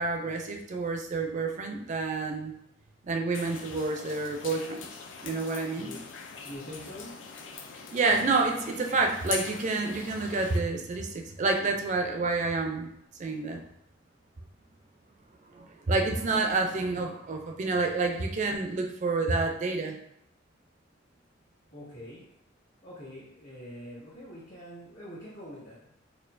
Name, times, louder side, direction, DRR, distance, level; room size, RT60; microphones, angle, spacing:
voice 1, 0.0-2.5 3.0-4.9 5.2-5.9 7.9-12.9 13.2-13.6 15.5-20.0, right 3 dB, 40° right, 3 dB, 0.4 m, -28 dB
sound 1, 3.3-10.6, left 5 dB, 75° left, 0.4 m, -42 dB
voice 2, 5.7-6.0 6.4-7.1 21.7-22.2 22.8-25.9, equal, 55° left, -11 dB, 1.5 m, -44 dB
4.3 x 2.3 x 2.5 m, 0.75 s
head